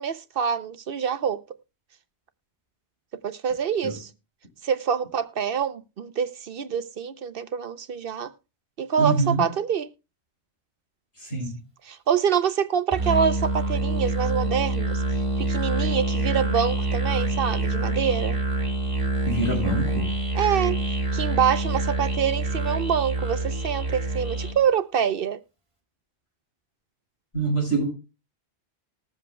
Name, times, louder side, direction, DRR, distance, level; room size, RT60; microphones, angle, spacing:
voice 1, 0.0-1.4 3.2-4.1 4.6-8.3 8.8-9.9 11.8-15.0 15.4-18.4 20.3-20.8 21.1-25.4, right 7 dB, 60° right, 0.8 m, -26 dB
voice 2, 9.0-9.4 11.2-11.6 19.3-20.1 27.3-27.9, right 2 dB, 80° left, 6.3 m, -25 dB
Musical instrument, 12.9-24.6, right 2 dB, 30° right, 2.0 m, -26 dB
20.5 x 7.5 x 2.2 m
omnidirectional pair, 1.1 m